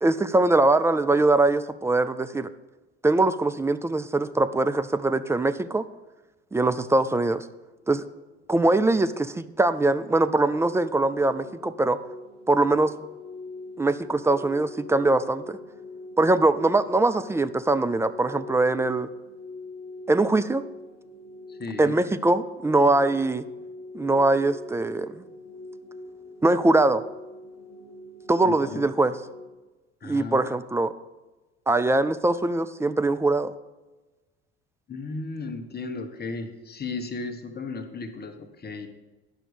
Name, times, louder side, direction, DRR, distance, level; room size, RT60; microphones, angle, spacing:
voice 1, 0.0-2.5 3.0-5.9 6.5-7.4 7.9-8.0 8.5-12.0 12.5-12.9 13.8-15.6 16.2-19.1 20.1-20.6 21.8-23.4 23.9-25.2 26.4-27.0 28.3-29.2 30.0-30.9 31.7-33.5, right 2 dB, 10° right, 11 dB, 0.3 m, -22 dB
sound 1, 10.4-29.5, left 2 dB, 70° right, 2.9 m, -43 dB
voice 2, 21.5-22.0 28.4-28.9 30.0-30.4 34.9-38.9, left 3 dB, 30° left, 7 dB, 1.2 m, -35 dB
9.9 x 6.1 x 5.0 m, 1.1 s
figure-of-eight pair, 60°, 35 cm